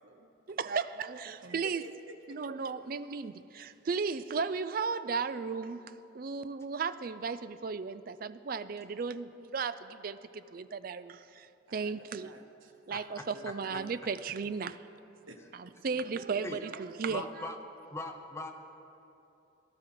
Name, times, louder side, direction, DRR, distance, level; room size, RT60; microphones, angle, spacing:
voice 1, 0.5-1.8 2.3-5.8 6.1-12.3 12.9-14.8 15.5-17.2, right 5 dB, 45° right, 0.4 m, -35 dB
voice 2, 1.4-2.4 11.7-12.7 13.2-13.6 15.3-15.4, right 2 dB, 75° right, 1.1 m, -51 dB
voice 3, 17.1-17.6 17.9-18.5, left 2 dB, 15° left, 0.8 m, -39 dB
18.0 x 12.5 x 3.9 m
head